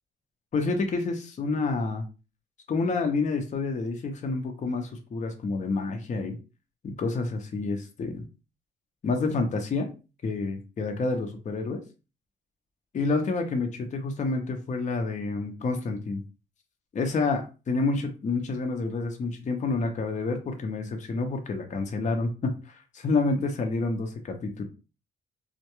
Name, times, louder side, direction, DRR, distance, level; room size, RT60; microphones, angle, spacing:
voice 1, 0.5-2.0 2.7-6.4 6.8-8.3 9.0-9.9 10.2-11.8 12.9-16.2 16.9-24.6, left 3 dB, 40° left, 4 dB, 0.6 m, -28 dB
2.2 x 2.1 x 2.9 m, 0.31 s
cardioid pair, 90°, 20 cm